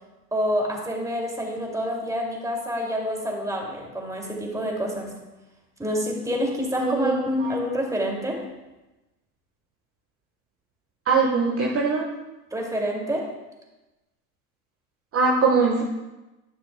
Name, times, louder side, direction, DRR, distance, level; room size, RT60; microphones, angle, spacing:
voice 1, 0.3-5.1 5.8-8.4 12.5-13.3, equal, 5° right, -1 dB, 2.4 m, -27 dB
voice 2, 11.1-12.1 15.1-15.8, right 4 dB, 30° right, -1 dB, 1.3 m, -21 dB
11.0 x 10.0 x 2.2 m, 1.0 s
figure-of-eight pair, 75°, 48 cm